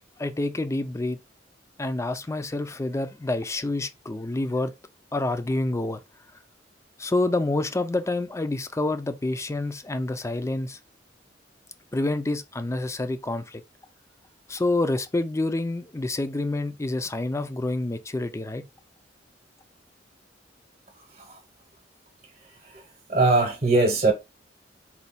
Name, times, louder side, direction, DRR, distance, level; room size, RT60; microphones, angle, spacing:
voice 1, 0.2-1.2 1.8-4.7 5.1-6.0 7.0-10.8 11.9-13.6 14.5-18.6, left 2 dB, 15° left, 0.4 m, -27 dB
voice 2, 22.4-24.1, right 2 dB, 40° right, 0.9 m, -23 dB
4.3 x 2.3 x 4.1 m
head